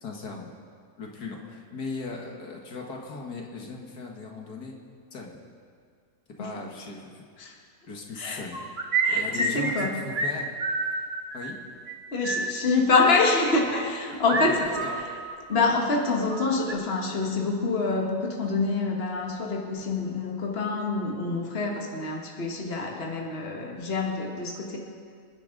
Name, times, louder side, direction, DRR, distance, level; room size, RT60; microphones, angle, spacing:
voice 1, 0.0-0.5 1.0-4.8 5.1-5.4 6.4-7.2 7.9-8.6 9.1-11.0 11.3-11.6 14.2-15.0, left 3 dB, 75° left, 0 dB, 2.1 m, -38 dB
sound 1, 8.5-9.9 10.1-10.3 10.6-11.5 11.9-12.0 12.2-12.5 14.3-15.7 16.0-16.7, right 2 dB, 40° right, 1.5 m, -28 dB
voice 2, 9.0-10.0 12.1-14.8 15.5-24.8, left 3 dB, 40° left, 0 dB, 1.8 m, -26 dB
27.5 x 9.9 x 3.9 m, 2.1 s
omnidirectional pair, 1.7 m